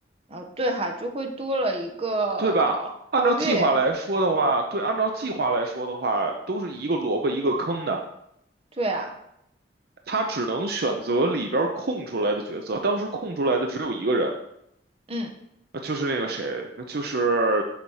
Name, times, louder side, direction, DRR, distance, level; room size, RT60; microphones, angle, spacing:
voice 1, 0.3-2.7 3.2-3.7 8.8-9.1 15.1-15.3, right 2 dB, 35° right, 3 dB, 1.0 m, -27 dB
voice 2, 2.4-2.8 3.1-8.0 10.1-14.3 15.8-17.6, right 2 dB, 60° right, 3 dB, 0.7 m, -25 dB
7.1 x 4.2 x 6.4 m, 0.76 s
head